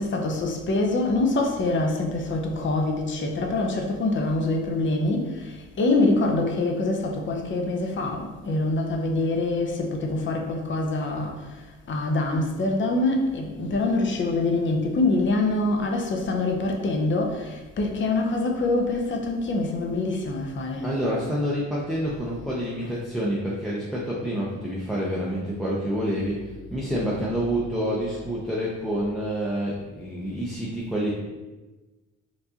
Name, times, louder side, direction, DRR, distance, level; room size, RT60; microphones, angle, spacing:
voice 1, 0.0-21.0 22.8-22.9, left 2 dB, 40° left, 1 dB, 0.7 m, -25 dB
voice 2, 20.8-26.4 26.7-31.1, equal, ahead, -6 dB, 0.6 m, -28 dB
4.5 x 2.6 x 2.8 m, 1.2 s
cardioid pair, 90°, 30 cm